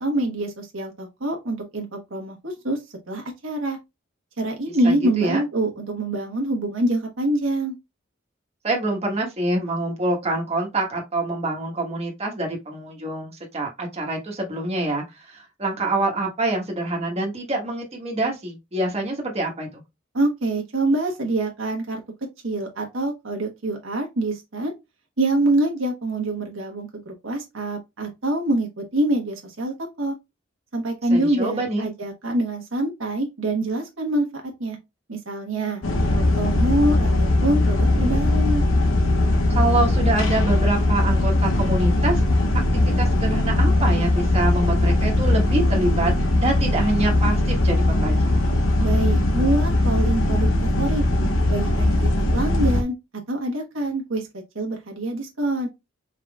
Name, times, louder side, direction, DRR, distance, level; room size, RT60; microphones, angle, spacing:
voice 1, 0.0-2.8 3.1-3.8 4.4-7.7 20.1-22.0 22.4-24.7 25.2-30.1 30.7-34.3 34.6-34.8 35.1-38.6 48.8-51.0 51.5-52.9 53.3-55.7, right 1 dB, 90° right, 1.2 m, -25 dB
voice 2, 4.8-5.4 8.6-15.0 15.3-19.8 31.1-31.9 39.5-42.5 43.0-48.4, right 2 dB, 30° right, 1.4 m, -26 dB
sound 1, 35.8-52.8, left 1 dB, 80° left, 0.8 m, -20 dB
4.8 x 3.6 x 2.4 m
head